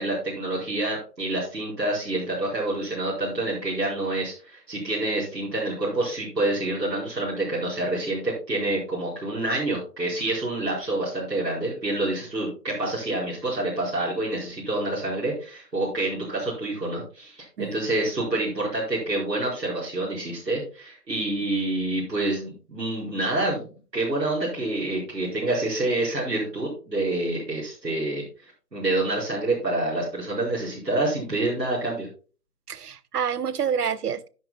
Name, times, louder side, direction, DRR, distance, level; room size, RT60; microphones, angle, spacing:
voice 1, 0.0-23.6 23.9-28.2 28.7-32.1, right 2 dB, 90° right, 5.0 m, -27 dB
voice 2, 32.7-34.3, right 7 dB, 70° right, 0.7 m, -27 dB
10.5 x 9.8 x 2.2 m
figure-of-eight pair, 150°, 49 cm